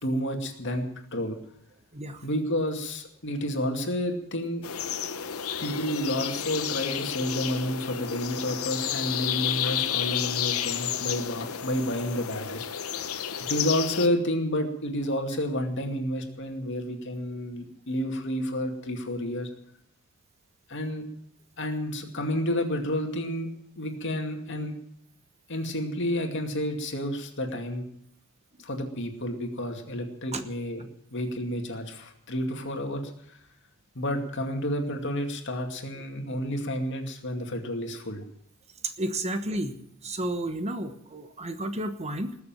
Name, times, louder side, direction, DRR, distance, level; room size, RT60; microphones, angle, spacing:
voice 1, 0.0-0.9 1.1-1.4 2.2-4.6 5.6-12.7 13.5-19.5 20.7-21.0 21.6-23.5 23.8-24.7 25.5-27.8 28.6-30.8 31.1-33.0 33.9-38.2, left 1 dB, 60° left, 3 dB, 2.4 m, -30 dB
voice 2, 1.9-2.3 30.3-30.4 38.8-39.8 40.0-42.4, right 1 dB, 30° right, 9 dB, 1.1 m, -32 dB
sound 1, 4.6-14.1, left 9 dB, 90° left, 1.0 m, -31 dB
20.0 x 7.0 x 9.0 m, 0.72 s
head